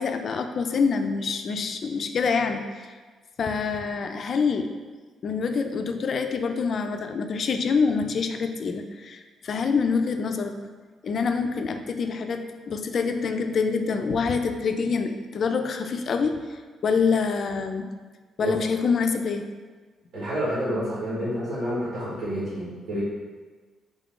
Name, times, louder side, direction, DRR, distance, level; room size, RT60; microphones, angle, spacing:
voice 1, 0.0-2.9 3.4-4.7 5.2-10.5 11.0-17.9 18.4-19.4, left 5 dB, 55° left, 6 dB, 0.3 m, -26 dB
voice 2, 20.1-23.0, equal, 85° right, -11 dB, 1.4 m, -29 dB
3.6 x 2.4 x 3.6 m, 1.4 s
cardioid pair, 90°, 0 cm